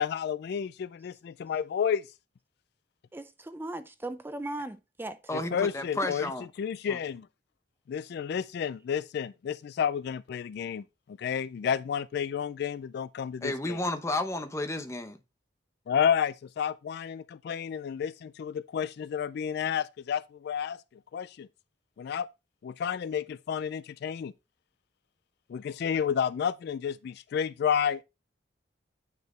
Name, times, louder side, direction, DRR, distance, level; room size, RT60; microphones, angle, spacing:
voice 1, 0.0-2.0 5.3-6.3 6.6-7.3 7.9-10.8 11.2-13.8 15.9-18.1 18.4-20.8 21.1-21.5 22.0-22.3 22.6-24.3 25.5-28.0, left 7 dB, 60° left, 0.3 m, -30 dB
voice 2, 3.1-5.2 6.0-6.1, right 2 dB, 10° right, 0.4 m, -38 dB
voice 3, 5.3-6.5 6.9-7.0 13.4-15.2, left 2 dB, 15° left, 0.8 m, -32 dB
9.3 x 4.8 x 3.2 m
head